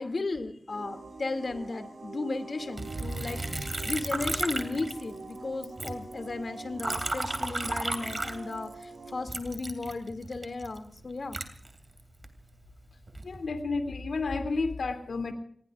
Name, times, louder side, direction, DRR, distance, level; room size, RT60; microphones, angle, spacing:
voice 1, 0.0-11.4, left 3 dB, 55° left, 7 dB, 2.4 m, -35 dB
sound 1, 0.7-9.2, right 3 dB, 80° right, 4.6 m, -45 dB
Liquid, 2.8-5.4 5.6-8.8 9.3-12.3 12.9-13.4, right 2 dB, 35° right, 2.6 m, -34 dB
voice 2, 13.2-15.3, left 3 dB, 85° left, 6 dB, 2.7 m, -31 dB
28.5 x 20.5 x 2.5 m, 0.63 s
wide cardioid pair, 90°, 0 cm